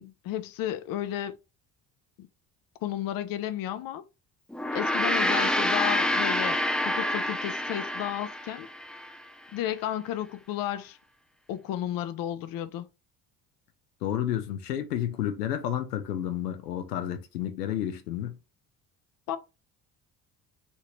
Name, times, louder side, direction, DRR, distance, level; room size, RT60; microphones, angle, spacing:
voice 1, 0.0-1.4 2.2-2.3 2.8-4.0 4.7-8.7 9.5-11.0 11.5-12.9 19.3-19.4, left 11 dB, 50° left, 0.6 m, -33 dB
Gong, 4.5-9.1, left 1 dB, ahead, 0.4 m, -27 dB
voice 2, 14.0-18.4, left 11 dB, 85° left, 0.6 m, -31 dB
3.3 x 2.8 x 3.1 m
hypercardioid pair, 55°, 47 cm